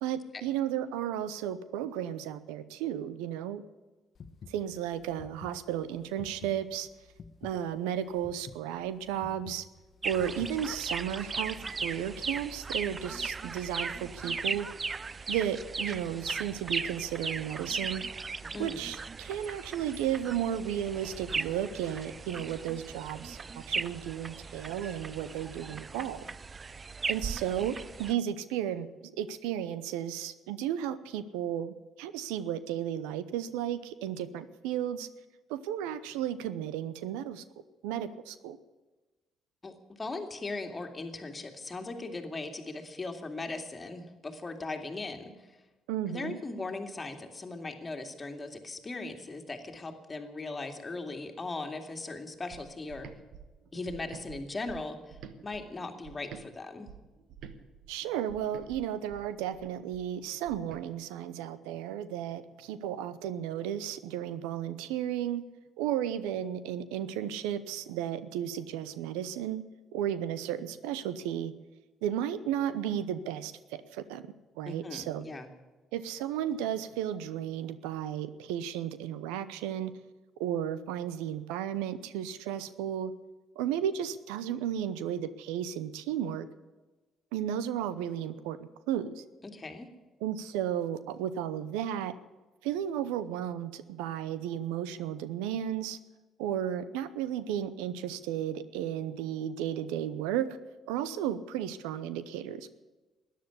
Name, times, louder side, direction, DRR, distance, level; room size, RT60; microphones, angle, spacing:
voice 1, 0.0-3.6 4.5-6.9 7.4-9.6 10.0-14.7 15.3-18.0 18.6-26.2 27.0-35.1 35.5-37.4 37.8-38.6 45.9-46.4 57.9-65.4 65.8-69.6 69.9-71.5 72.0-74.3 74.6-75.2 75.9-79.9 80.4-83.1 83.6-86.5 87.3-89.2 90.2-92.1 92.6-96.0 96.4-100.6 100.9-102.7, right 10 dB, 85° right, 14 dB, 0.8 m, -34 dB
sound 1, 4.1-10.9, left 5 dB, 50° left, 1.2 m, -50 dB
sound 2, 10.0-28.1, right 4 dB, 35° right, 0.4 m, -37 dB
voice 2, 18.4-18.8 39.6-45.6 46.1-53.1 53.7-56.9 74.7-75.5 89.5-89.9, left 3 dB, 30° left, 4 dB, 2.4 m, -39 dB
sound 3, 52.5-56.5 56.8-60.8, right 7 dB, 70° right, 1.3 m, -50 dB
13.5 x 10.5 x 9.6 m, 1.2 s
supercardioid pair, 65°, 0 cm